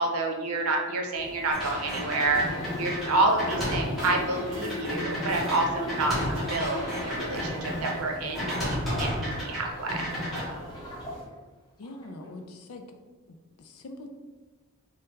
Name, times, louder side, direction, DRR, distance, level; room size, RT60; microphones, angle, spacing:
voice 1, 0.0-2.4 2.8-6.2 6.5-10.1, right 2 dB, 85° right, 2 dB, 0.6 m, -28 dB
sound 1, 1.1-11.3, equal, 35° right, 1.2 m, -44 dB
sound 2, 1.5-7.9 8.3-9.6 9.9-10.4, equal, ahead, 1.1 m, -32 dB
sound 3, 1.8-8.3 8.7-11.2 11.8-12.1, left 2 dB, 20° left, 0.4 m, -39 dB
voice 2, 8.2-8.6 11.8-12.9 13.3-14.1, left 2 dB, 80° left, 5 dB, 0.4 m, -44 dB
3.4 x 2.3 x 3.1 m, 1.3 s
head